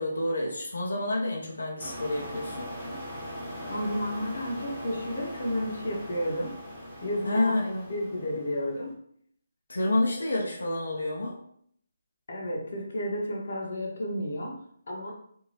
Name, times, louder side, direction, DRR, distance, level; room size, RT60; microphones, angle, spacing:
voice 1, 0.0-2.7 7.2-7.9 9.7-11.4, left 1 dB, 90° left, -2 dB, 0.7 m, -29 dB
sound 1, 1.8-8.8, equal, 5° right, 0.8 m, -40 dB
voice 2, 3.7-6.5 7.0-7.5 7.9-8.9 12.3-14.6 14.9-15.1, equal, 60° left, -2 dB, 0.9 m, -31 dB
2.7 x 2.6 x 3.3 m, 0.65 s
hypercardioid pair, 165°, 0 cm